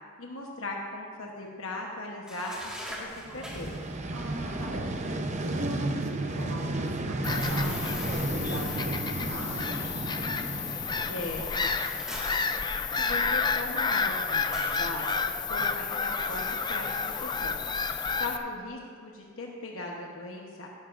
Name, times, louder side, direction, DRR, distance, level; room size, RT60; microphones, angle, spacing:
voice 1, 0.2-3.8 11.1-11.7 13.0-15.2 15.5-17.6 18.2-20.7, left 2 dB, 70° left, -1 dB, 1.1 m, -38 dB
sound 1, 2.3-3.9 7.4-9.0 11.3-13.1 14.5-14.9, equal, 5° right, 1.8 m, -42 dB
Vehicle, 3.1-12.1, right 2 dB, 35° right, 0.7 m, -33 dB
voice 2, 4.1-4.9 5.6-10.0, right 1 dB, 70° right, -2 dB, 2.2 m, -40 dB
Bird vocalization bird call bird song / Gull seagull, 7.2-18.4, left 4 dB, 20° left, 0.4 m, -30 dB
14.5 x 12.0 x 2.6 m, 2.1 s
head